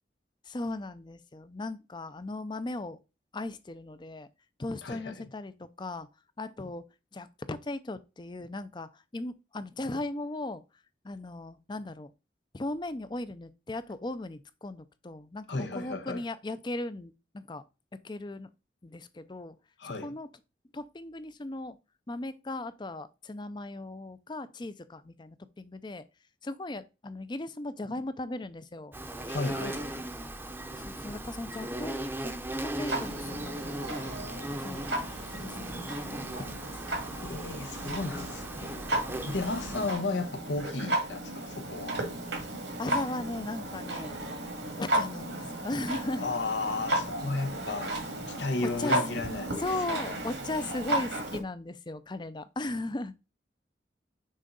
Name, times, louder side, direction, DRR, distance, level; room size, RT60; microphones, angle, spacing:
voice 1, 0.5-3.0 3.3-4.3 4.6-6.1 6.4-6.8 7.1-10.6 11.0-12.1 12.5-17.6 18.0-18.5 18.8-19.6 20.0-20.3 20.7-21.8 22.1-26.0 26.4-29.0 30.8-32.3 32.6-34.1 34.6-34.9 35.2-36.8 39.6-39.9 42.8-44.2 44.8-46.3 48.6-49.0 49.6-53.1, left 2 dB, 25° left, 0.5 m, -37 dB
voice 2, 4.8-5.3 15.5-16.2 19.8-20.2 29.3-30.0 37.2-38.8 39.2-42.0 46.2-48.0 48.3-49.6, left 3 dB, 80° left, 0.9 m, -34 dB
Insect, 28.9-39.9, right 1 dB, 10° right, 0.7 m, -38 dB
Clock, 32.9-51.4, right 1 dB, 85° right, 2.0 m, -34 dB
6.4 x 4.5 x 3.9 m
head